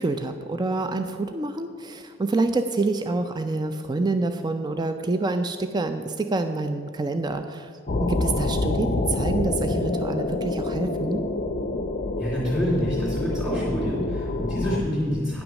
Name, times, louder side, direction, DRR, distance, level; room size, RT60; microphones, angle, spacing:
voice 1, 0.0-7.7 8.0-11.2, right 3 dB, 20° right, 8 dB, 0.3 m, -27 dB
sound 1, 7.9-14.8, left 2 dB, 35° left, 0.5 m, -27 dB
voice 2, 12.2-15.4, equal, ahead, -9 dB, 2.4 m, -27 dB
9.9 x 6.0 x 6.3 m, 2.3 s
head